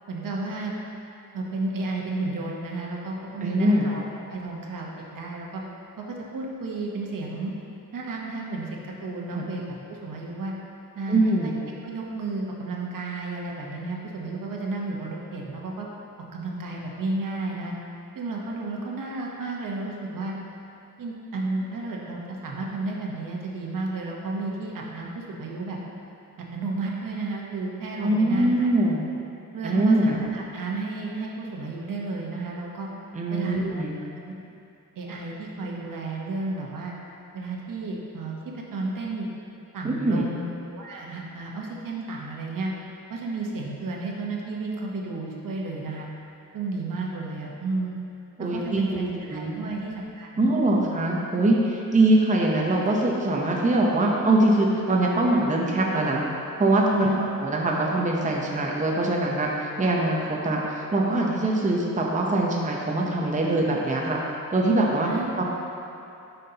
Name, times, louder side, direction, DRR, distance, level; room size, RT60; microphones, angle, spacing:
voice 1, 0.1-0.7 1.3-5.6 6.0-7.5 7.9-10.5 10.9-11.5 11.8-15.9 16.3-17.7 18.1-20.3 21.0-25.8 26.4-28.7 29.5-32.9 33.3-33.8 35.0-36.9 37.3-39.3 39.7-42.7 43.1-46.1 46.5-47.9 48.4-50.8 57.0-57.2 65.1-65.3, right 2 dB, 65° right, -2 dB, 1.1 m, -32 dB
voice 2, 3.4-3.9 9.3-9.5 11.1-11.6 28.0-29.0 29.6-30.2 33.1-34.0 39.8-40.3 48.4-49.0 49.3-49.6 50.4-56.2 56.6-64.2 64.5-65.1 65.4-65.5, right 2 dB, 20° right, -2 dB, 0.7 m, -23 dB
9.1 x 5.6 x 2.9 m, 2.7 s
wide cardioid pair, 105°, 35 cm